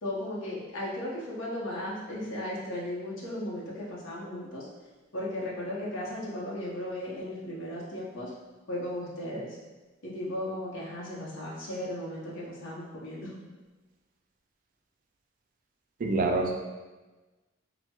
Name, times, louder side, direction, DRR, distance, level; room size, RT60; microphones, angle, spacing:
voice 1, 0.0-4.7 5.1-8.3 8.7-9.6 10.0-13.3, left 1 dB, 70° left, -5 dB, 0.7 m, -36 dB
voice 2, 16.0-16.5, right 3 dB, 40° right, 2 dB, 0.3 m, -26 dB
4.2 x 2.1 x 2.2 m, 1.2 s
head